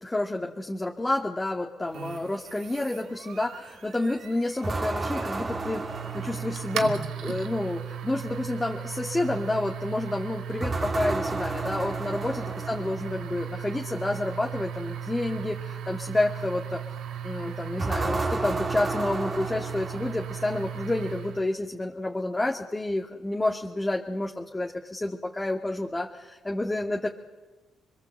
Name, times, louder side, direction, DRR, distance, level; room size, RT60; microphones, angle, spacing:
voice 1, 0.0-16.8 17.2-27.1, left 2 dB, 15° left, 1 dB, 2.2 m, -29 dB
sound 1, 1.9-21.5, right 9 dB, 80° right, 2.5 m, -37 dB
sound 2, 4.6-7.0 10.6-13.1 17.8-20.4, right 3 dB, 35° right, 3.5 m, -32 dB
28.0 x 22.5 x 8.0 m, 1.2 s
cardioid pair, 90°, 0 cm